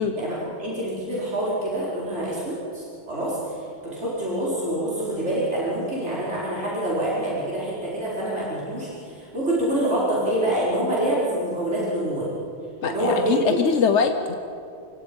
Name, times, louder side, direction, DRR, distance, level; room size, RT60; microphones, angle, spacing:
voice 1, 0.2-3.4 3.8-12.3 12.8-13.6, right 1 dB, 85° right, -8 dB, 5.3 m, -26 dB
voice 2, 12.8-14.3, left 6 dB, 85° left, 7 dB, 1.4 m, -22 dB
30.0 x 24.5 x 5.5 m, 2.4 s
omnidirectional pair, 1.1 m